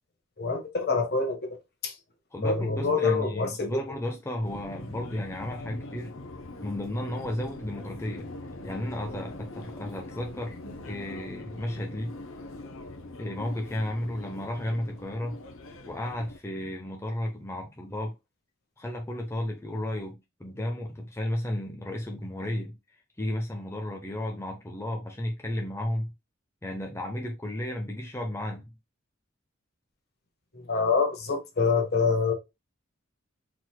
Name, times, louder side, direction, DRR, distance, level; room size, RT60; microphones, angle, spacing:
voice 1, 0.4-1.5 1.8-1.9 2.4-3.8 30.5-32.3, left 4 dB, 50° left, 1.3 m, -26 dB
voice 2, 2.3-6.1 6.6-8.3 8.6-10.6 10.8-12.1 13.2-15.4 15.9-18.1 18.8-22.8 23.2-26.1 26.6-28.7, left 1 dB, 15° left, 0.8 m, -33 dB
Subway metro underground, 4.4-16.4, left 2 dB, 75° left, 0.9 m, -42 dB
4.7 x 4.0 x 2.2 m
head